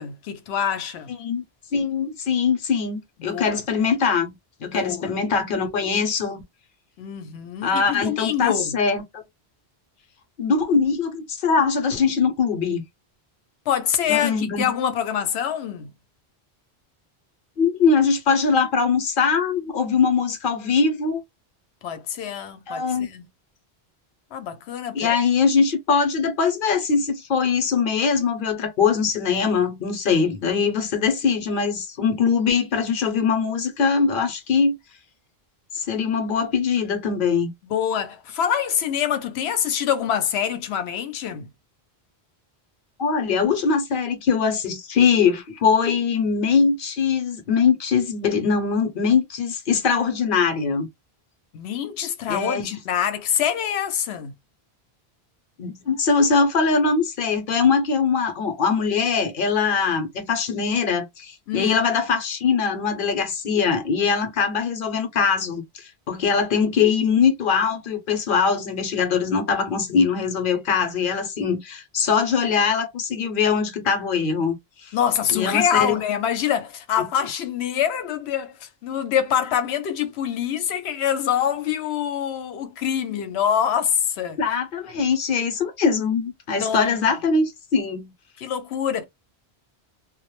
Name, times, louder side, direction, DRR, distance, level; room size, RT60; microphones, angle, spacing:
voice 1, 0.0-1.1 3.2-3.6 4.7-5.2 7.0-8.7 13.7-15.9 21.8-23.2 24.3-25.2 37.6-41.5 51.5-54.3 61.5-61.8 74.9-84.4 86.6-87.0 88.4-89.0, left 9 dB, 90° left, 0.9 m, -25 dB
voice 2, 1.7-4.3 4.6-6.4 7.6-9.2 10.4-12.8 14.1-14.7 17.6-21.2 22.7-23.1 24.9-34.8 35.7-37.5 43.0-50.9 52.3-52.7 55.6-74.6 74.8-74.9 75.3-76.0 84.4-88.1, left 5 dB, 60° left, 0.8 m, -22 dB
2.2 x 2.0 x 2.9 m
omnidirectional pair, 1.1 m